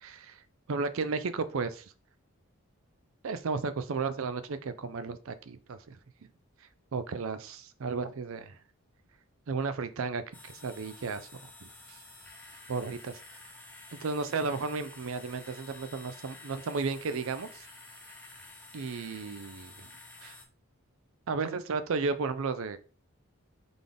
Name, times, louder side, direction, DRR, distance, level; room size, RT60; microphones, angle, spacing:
voice 1, 0.0-0.4 0.7-1.8 3.2-6.0 6.9-8.6 9.5-11.3 11.6-12.0 12.7-13.4 13.9-17.7 18.7-19.7 20.2-20.3 21.3-22.8, right 4 dB, 65° right, 12 dB, 0.4 m, -34 dB
sound 1, 10.3-20.5, left 2 dB, 10° left, 0.7 m, -50 dB
3.9 x 3.5 x 3.6 m, 0.38 s
head